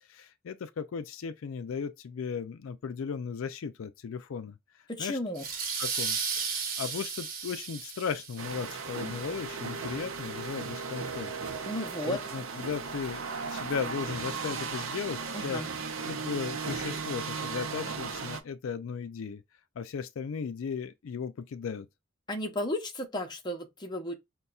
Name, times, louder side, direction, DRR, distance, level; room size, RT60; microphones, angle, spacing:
voice 1, 0.1-4.6 5.0-5.2 5.8-11.3 11.6-11.7 12.1-15.6 16.1-19.4 19.8-21.9, left 6 dB, 90° left, 0.4 m, -36 dB
voice 2, 4.9-5.5 11.7-12.2 15.3-15.7 22.3-24.1, left 1 dB, 20° left, 0.7 m, -33 dB
sound 1, 5.4-8.8, right 5 dB, 45° right, 1.0 m, -34 dB
sound 2, 8.4-18.4, right 5 dB, 85° right, 0.6 m, -36 dB
5.3 x 2.2 x 2.3 m
head